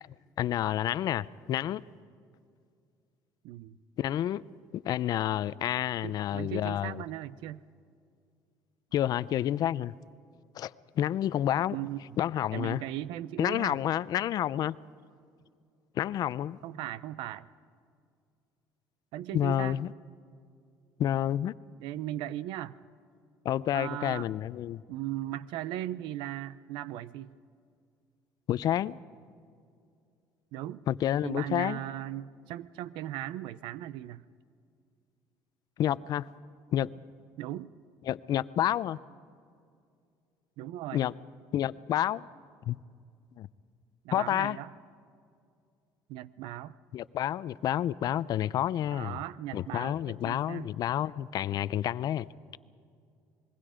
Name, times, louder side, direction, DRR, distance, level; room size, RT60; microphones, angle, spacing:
voice 1, 0.4-1.8 4.0-4.4 4.7-7.0 8.9-9.9 10.6-11.8 12.2-12.8 13.4-14.8 16.0-16.6 19.3-19.9 21.0-21.5 23.4-24.8 28.5-29.0 30.9-31.8 35.8-36.2 36.7-36.9 38.1-39.0 40.9-41.1 41.5-42.3 42.7-42.8 43.4-43.5 44.1-44.6 46.9-49.2 49.5-52.3, left 11 dB, 55° left, 0.5 m, -29 dB
voice 2, 3.4-3.8 6.0-7.6 11.7-12.2 12.5-13.8 16.6-17.5 19.1-19.8 21.8-22.7 23.7-24.3 24.9-27.4 30.5-30.8 31.2-34.2 37.4-37.7 40.6-41.0 44.0-44.7 46.1-46.8 48.9-50.7, right 13 dB, 80° right, 0.6 m, -38 dB
25.5 x 21.5 x 5.0 m
cardioid pair, 110°, 8 cm